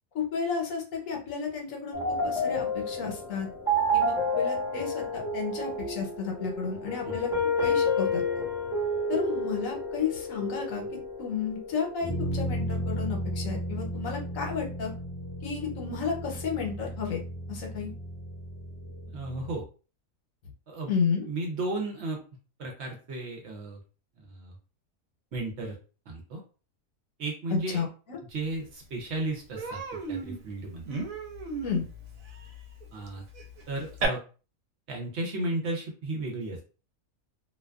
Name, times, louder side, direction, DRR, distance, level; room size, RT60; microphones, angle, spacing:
voice 1, 0.1-3.5 3.9-7.3 7.6-8.2 9.1-14.9 15.4-17.2 17.5-17.9 20.9-21.3 27.7-28.2 31.6-31.8, left 6 dB, 75° left, 1 dB, 1.1 m, -32 dB
sound 1, 1.9-19.6, left 1 dB, 5° right, 0.8 m, -31 dB
voice 2, 19.1-19.6 20.7-20.9 21.2-22.2 22.6-23.8 24.3-24.6 25.3-25.8 26.1-26.4 27.2-27.8 28.3-29.8 30.1-30.8 32.9-33.2 33.7-34.2 34.9-36.6, right 2 dB, 60° right, 1 dB, 0.8 m, -34 dB
Human voice, 28.6-28.7 29.0-29.2 29.6-34.1, right 4 dB, 90° right, 1.0 m, -36 dB
2.4 x 2.2 x 2.3 m, 0.36 s
omnidirectional pair, 1.4 m